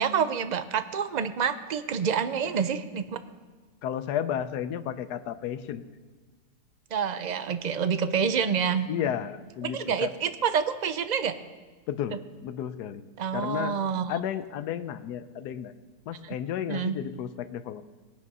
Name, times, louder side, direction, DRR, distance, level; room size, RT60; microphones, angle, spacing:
voice 1, 0.0-3.2 6.9-8.9 9.6-11.3 13.2-14.2 16.2-16.3 16.7-17.0, right 7 dB, 55° right, 11 dB, 0.5 m, -27 dB
voice 2, 3.8-5.8 8.9-10.1 11.9-13.0 13.3-13.8 14.1-15.7 16.1-17.8, left 9 dB, 85° left, 12 dB, 1.3 m, -32 dB
18.5 x 9.3 x 5.5 m, 1.4 s
omnidirectional pair, 1.7 m